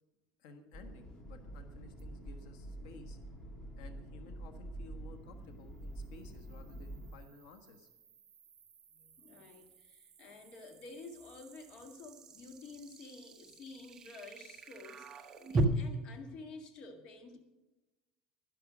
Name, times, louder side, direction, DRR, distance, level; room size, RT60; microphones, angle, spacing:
voice 1, 0.4-3.2 3.8-7.9, left 4 dB, 85° left, 6 dB, 1.4 m, -55 dB
sound 1, 0.7-7.2, right 1 dB, 25° left, 1.7 m, -47 dB
sound 2, 2.0-2.1 5.5-15.6, right 2 dB, 25° right, 0.8 m, -42 dB
voice 2, 8.9-17.4, left 3 dB, 45° left, 5 dB, 1.8 m, -51 dB
11.5 x 10.5 x 6.2 m, 1.0 s
cardioid pair, 155°, 2 cm